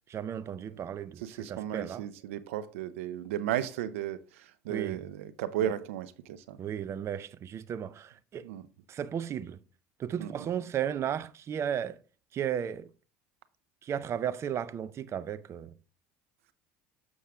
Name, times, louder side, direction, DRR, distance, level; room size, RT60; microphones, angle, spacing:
voice 1, 0.1-1.2 1.5-2.0 4.7-5.0 6.6-8.5 8.9-9.6 10.0-12.0 12.3-12.9 13.8-15.7, right 9 dB, 40° right, 0.5 m, -34 dB
voice 2, 1.2-6.6 8.4-8.6 10.2-10.5, right 11 dB, 90° right, 0.6 m, -35 dB
7.2 x 6.2 x 3.4 m
supercardioid pair, 90°, 7 cm